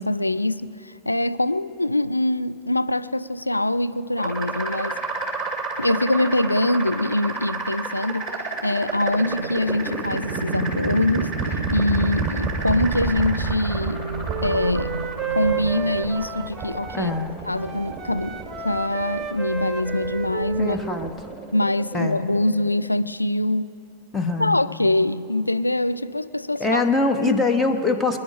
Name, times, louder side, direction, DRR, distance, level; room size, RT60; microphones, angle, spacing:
voice 1, 0.0-5.0 5.8-11.3 11.7-14.1 14.4-14.9 15.3-17.1 17.5-20.8 21.5-23.7 24.4-26.8 27.2-27.4, left 1 dB, 85° left, 0.3 m, -24 dB
sound 1, 4.2-22.9, right 4 dB, 5° right, 2.5 m, -30 dB
sound 2, 8.8-16.5, right 1 dB, 85° right, 0.3 m, -34 dB
Wind instrument woodwind instrument, 13.8-17.3 17.5-21.1, right 8 dB, 25° right, 0.8 m, -32 dB
voice 2, 16.9-17.4 20.6-21.1 21.9-22.2 24.1-24.7 26.6-28.2, left 3 dB, 10° left, 1.1 m, -23 dB
24.5 x 10.0 x 5.1 m
figure-of-eight pair, 90°, 0 cm